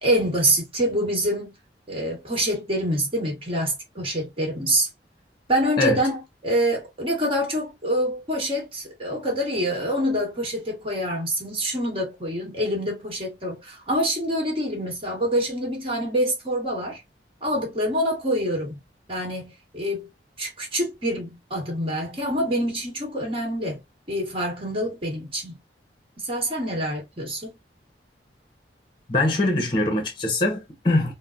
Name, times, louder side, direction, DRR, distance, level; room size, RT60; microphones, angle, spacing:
voice 1, 0.0-1.5 1.9-4.9 5.5-17.0 17.4-18.8 19.1-20.1 20.4-23.8 24.1-25.6 26.2-27.5, equal, 30° right, 1.4 m, -26 dB
voice 2, 29.1-31.1, left 2 dB, 30° left, 0.8 m, -22 dB
3.7 x 2.1 x 2.4 m
head